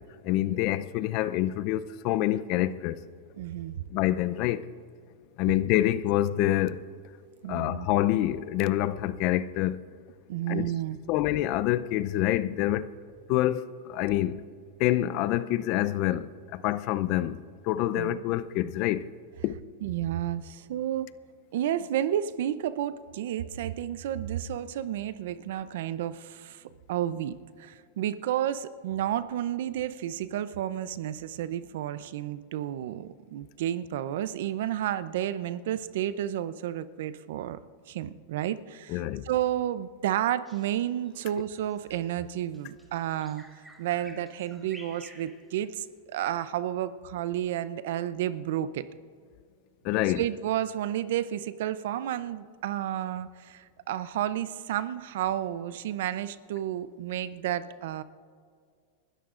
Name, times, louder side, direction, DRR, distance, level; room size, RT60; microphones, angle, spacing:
voice 1, 0.2-3.0 3.9-4.6 5.4-6.9 7.5-9.8 10.5-10.7 11.1-12.9 13.3-14.4 14.8-19.1 19.4-19.5 38.9-39.2 49.8-50.2, left 14 dB, 50° left, 0.6 m, -27 dB
voice 2, 3.4-3.8 7.4-7.9 10.3-11.0 17.9-18.2 19.8-21.1 21.5-26.6 26.9-37.6 37.9-43.4 43.8-48.9 50.2-58.0, right 11 dB, 70° right, 0.6 m, -31 dB
Bird vocalization bird call bird song, 40.5-46.0, equal, 5° right, 2.5 m, -53 dB
30.0 x 13.5 x 2.5 m
hypercardioid pair, 115°, 0 cm